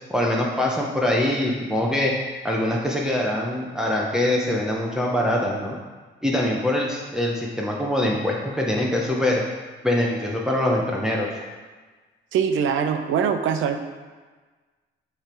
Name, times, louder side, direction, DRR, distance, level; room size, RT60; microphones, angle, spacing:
voice 1, 0.1-2.1 2.4-5.8 6.2-9.4 9.8-11.3, left 1 dB, 5° right, -3 dB, 0.9 m, -23 dB
voice 2, 12.3-13.8, right 7 dB, 80° right, 7 dB, 0.6 m, -22 dB
8.2 x 3.4 x 4.5 m, 1.3 s
cardioid pair, 90°, 20 cm